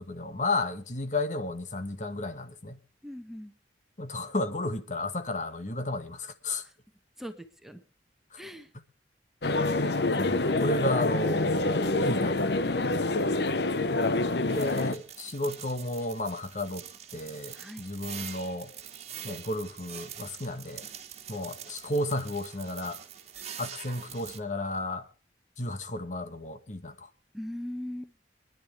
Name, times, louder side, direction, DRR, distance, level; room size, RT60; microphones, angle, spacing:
voice 1, 0.0-2.8 4.0-6.6 8.3-8.4 8.7-8.8 9.8-12.5 14.4-18.7 19.2-20.8 21.3-23.0 23.6-25.1 25.6-27.1, left 2 dB, 45° left, 1.4 m, -33 dB
voice 2, 3.0-3.5 7.2-7.8 8.4-8.7 17.5-17.9 27.3-28.1, left 1 dB, ahead, 1.3 m, -40 dB
sound 1, 9.4-14.9, left 2 dB, 65° left, 1.0 m, -26 dB
sound 2, 14.5-24.4, right 9 dB, 40° right, 1.8 m, -44 dB
24.5 x 10.5 x 3.4 m
head